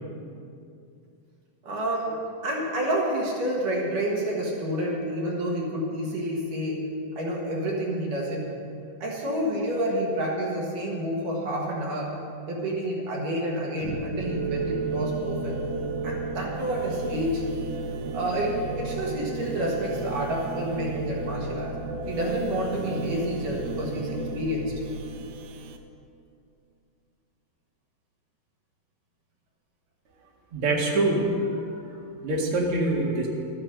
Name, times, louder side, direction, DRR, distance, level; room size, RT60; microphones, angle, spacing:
voice 1, 1.6-6.8 7.2-8.5 9.0-12.1 12.5-15.6 16.0-17.4 18.1-21.7 22.1-24.7, right 1 dB, 60° right, -3 dB, 3.0 m, -29 dB
sound 1, 13.8-25.8, right 3 dB, 80° right, 2.7 m, -33 dB
voice 2, 30.5-31.4 32.2-33.3, right 2 dB, 45° right, -2 dB, 2.3 m, -24 dB
13.0 x 10.0 x 6.6 m, 2.5 s
omnidirectional pair, 4.5 m